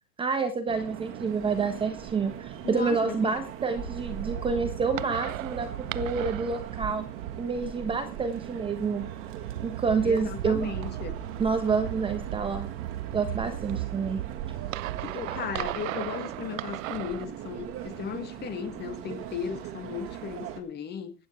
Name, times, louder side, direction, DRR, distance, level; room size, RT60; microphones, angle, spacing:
voice 1, 0.2-7.1 7.4-9.1 9.6-10.7 11.4-12.7 13.1-14.2, right 5 dB, 10° right, 1.2 m, -28 dB
sound 1, 0.7-20.6, right 9 dB, 25° right, 2.2 m, -40 dB
voice 2, 2.6-3.3 10.0-11.2 15.0-21.1, left 8 dB, 20° left, 1.8 m, -36 dB
sound 2, 3.8-17.2, right 14 dB, 55° right, 0.8 m, -37 dB
15.5 x 10.0 x 4.5 m
hypercardioid pair, 150°, 47 cm